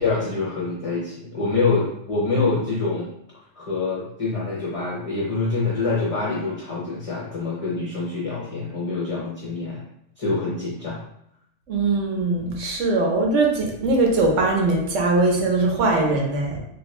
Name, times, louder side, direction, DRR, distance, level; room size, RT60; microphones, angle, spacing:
voice 1, 0.0-3.1 3.6-9.8 10.2-11.0, left 3 dB, 40° left, -6 dB, 0.5 m, -25 dB
voice 2, 11.7-16.6, right 3 dB, 75° right, 0 dB, 1.1 m, -21 dB
3.1 x 2.5 x 3.1 m, 0.76 s
omnidirectional pair, 1.3 m